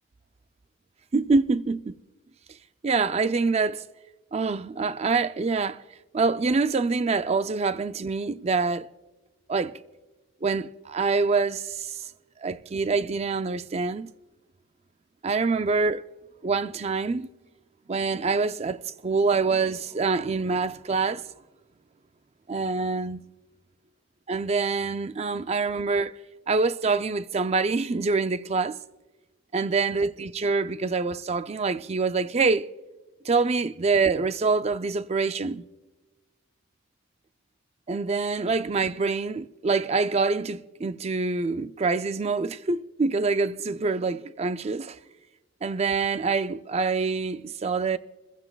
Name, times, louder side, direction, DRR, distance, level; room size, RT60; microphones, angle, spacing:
voice 1, 1.1-1.9 2.8-3.8 4.3-5.8 6.1-8.9 9.5-9.7 10.4-12.1 12.4-14.1 15.2-16.0 16.4-17.3 17.9-21.2 22.5-23.2 24.3-26.1 26.5-28.8 29.5-32.7 33.2-35.6 37.9-45.0 45.6-48.0, right 4 dB, 35° right, 0.4 m, -25 dB
28.5 x 15.5 x 2.3 m
head